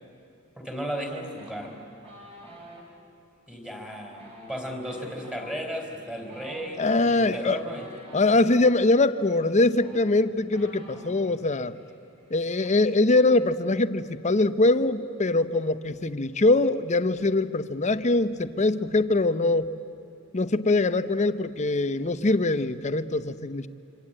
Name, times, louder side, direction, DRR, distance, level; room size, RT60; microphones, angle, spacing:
voice 1, 0.6-1.7 3.5-4.2 4.5-7.9, equal, 5° right, 2 dB, 3.7 m, -34 dB
sound 1, 1.4-2.8 4.1-8.5 9.4-9.5 9.7-11.4 11.7-11.9 12.2-12.7, equal, 30° right, 4.9 m, -47 dB
voice 2, 6.8-7.6 8.1-11.7 12.3-19.7 20.3-23.7, left 2 dB, 35° left, 12 dB, 0.8 m, -23 dB
26.5 x 25.5 x 8.7 m, 2.6 s
head